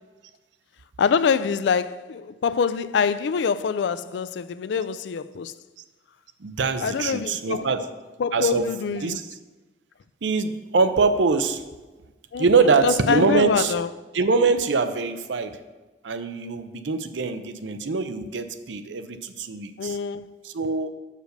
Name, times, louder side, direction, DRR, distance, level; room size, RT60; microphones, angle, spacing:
voice 1, 1.0-5.5 6.8-7.7 8.2-9.2 12.3-12.5 12.8-13.9 19.8-20.3, left 6 dB, 75° left, 0.3 m, -25 dB
voice 2, 6.4-7.9 8.3-9.4 10.2-11.6 12.4-13.7 14.1-15.6 16.0-20.0 20.4-20.9, right 4 dB, 85° right, 0.6 m, -23 dB
6.5 x 5.0 x 6.5 m
head